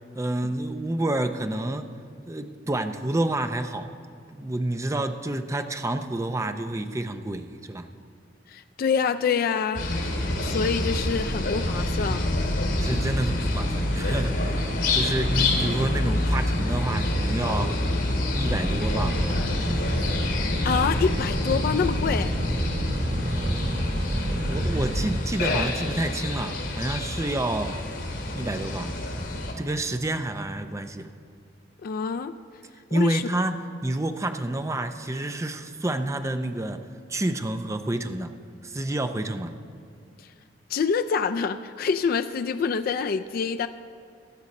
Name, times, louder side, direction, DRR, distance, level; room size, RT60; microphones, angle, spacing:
voice 1, 0.1-1.9 2.3-3.9 4.3-7.9 12.8-17.8 18.3-19.2 23.3-23.9 24.2-27.8 28.3-28.9 29.6-31.1 32.9-38.3 38.6-39.5, right 1 dB, 15° right, 8 dB, 0.5 m, -29 dB
voice 2, 8.5-9.8 10.4-12.3 20.4-22.3 31.8-32.3 32.9-33.2 40.2-40.3 40.7-43.7, left 6 dB, 50° left, 9 dB, 0.3 m, -26 dB
sound 1, 9.7-29.5, left 1 dB, 85° left, 2.2 m, -27 dB
sound 2, 18.3-25.1, equal, 65° right, 2.0 m, -28 dB
16.0 x 11.0 x 4.2 m, 2.3 s
head